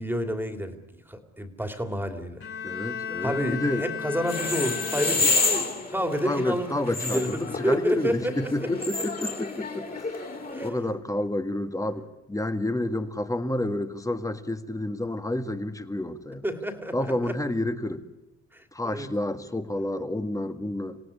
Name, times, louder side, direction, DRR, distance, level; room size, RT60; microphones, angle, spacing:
voice 1, 0.0-2.4 3.2-6.7 7.0-8.7 10.5-10.7 16.4-17.4 18.5-19.1, equal, 5° right, 6 dB, 2.8 m, -30 dB
Bowed string instrument, 2.4-5.6, left 7 dB, 45° left, 5.2 m, -35 dB
voice 2, 2.6-3.9 6.2-10.3 10.6-16.4 16.9-18.0 18.7-21.0, left 1 dB, 10° left, 9 dB, 1.8 m, -29 dB
sound 1, 4.2-10.7, left 3 dB, 30° left, 3.5 m, -29 dB
27.0 x 17.5 x 9.9 m, 0.95 s
cardioid pair, 90°, 30 cm